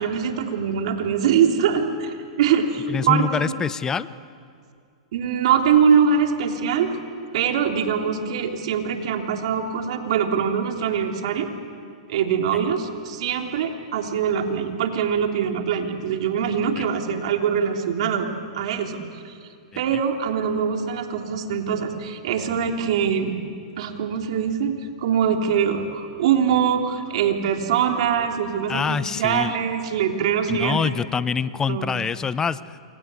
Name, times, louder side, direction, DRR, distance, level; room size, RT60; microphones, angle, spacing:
voice 1, 0.0-3.6 5.1-6.9 7.3-11.5 12.1-18.3 18.5-19.3 19.8-23.4 23.8-30.8 31.7-31.9, right 7 dB, 65° right, 3 dB, 3.4 m, -23 dB
voice 2, 2.9-4.1 16.8-16.9 19.7-19.8 28.7-29.5 30.5-32.8, left 6 dB, 15° left, 16 dB, 0.7 m, -25 dB
28.0 x 24.5 x 8.3 m, 2.3 s
hypercardioid pair, 125°, 4 cm